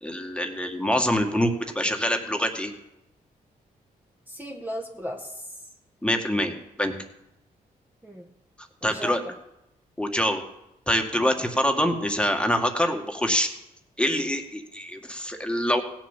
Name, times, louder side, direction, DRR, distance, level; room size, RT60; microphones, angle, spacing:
voice 1, 0.0-2.7 6.0-6.9 8.8-9.2 10.0-10.4 10.9-13.5 14.0-15.8, equal, 5° left, 4 dB, 1.9 m, -25 dB
voice 2, 4.3-5.7 8.0-8.3 8.8-9.3, equal, 10° right, 1 dB, 1.6 m, -36 dB
16.5 x 7.4 x 7.4 m, 0.86 s
cardioid pair, 60°, 16 cm